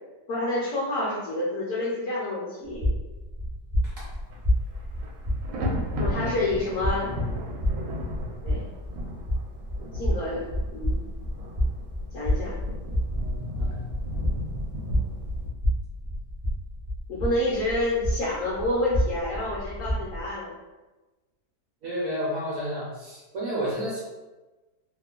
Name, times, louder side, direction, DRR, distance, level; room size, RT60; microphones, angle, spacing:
voice 1, 0.3-2.9 6.0-7.1 8.4-8.7 9.9-10.4 10.7-11.0 12.1-12.6 17.1-20.5, left 1 dB, 65° left, -6 dB, 0.9 m, -28 dB
sound 1, 2.6-20.2, equal, 35° right, 0.5 m, -30 dB
Thunder, 4.0-4.4 4.7-15.5, left 1 dB, 85° right, 1.2 m, -35 dB
voice 2, 13.2-13.8 21.8-24.0, equal, 65° right, -6 dB, 0.9 m, -31 dB
2.9 x 2.1 x 2.3 m, 1.2 s
omnidirectional pair, 1.8 m